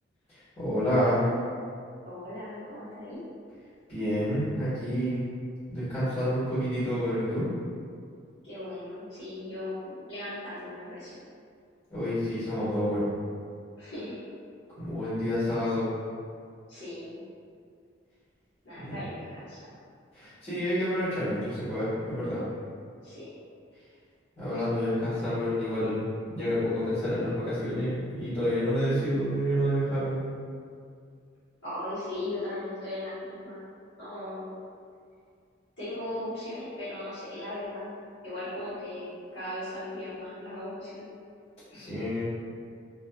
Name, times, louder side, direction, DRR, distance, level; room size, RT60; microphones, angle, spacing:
voice 1, 0.6-1.3 3.9-5.2 5.7-7.5 11.9-13.0 14.8-15.9 18.7-19.0 20.1-22.4 24.4-26.0 26.3-30.2 41.7-42.2, equal, 35° left, -15 dB, 1.3 m, -28 dB
voice 2, 2.0-3.2 8.4-11.2 13.8-14.2 16.7-17.2 18.6-19.6 23.0-23.3 31.6-33.6 34.0-34.5 35.8-37.9 38.2-41.1 41.7-41.9, left 1 dB, 70° left, -14 dB, 1.2 m, -38 dB
2.5 x 2.5 x 2.3 m, 2.2 s
head